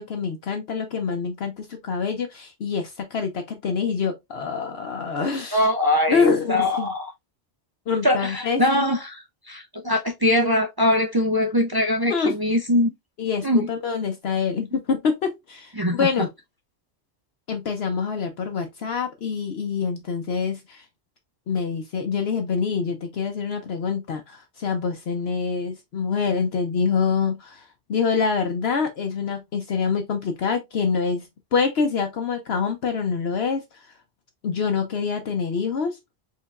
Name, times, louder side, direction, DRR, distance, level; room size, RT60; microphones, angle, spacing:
voice 1, 0.0-5.7 6.1-6.9 7.9-8.6 12.1-12.3 13.2-16.3 17.5-20.8 21.5-27.6 27.9-33.6 34.4-36.0, left 5 dB, 65° left, 0.9 m, -25 dB
voice 2, 5.5-7.1 8.0-12.9 13.4-13.7 15.8-16.1, left 1 dB, 35° right, 0.3 m, -22 dB
4.6 x 3.4 x 2.3 m
omnidirectional pair, 1.2 m